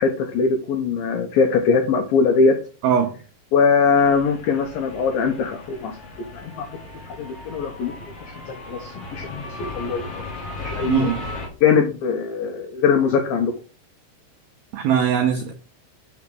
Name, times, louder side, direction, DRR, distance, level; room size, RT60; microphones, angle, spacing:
voice 1, 0.0-2.6 3.5-5.9 6.3-6.7 7.2-7.9 8.5-10.0 10.6-11.1 11.6-13.5, left 5 dB, 85° left, 2.0 m, -21 dB
voice 2, 2.8-3.2 10.9-11.2 14.7-15.5, right 7 dB, 90° right, 2.1 m, -20 dB
sound 1, 3.9-11.5, left 2 dB, 35° left, 3.4 m, -36 dB
7.3 x 6.5 x 6.1 m
omnidirectional pair, 5.8 m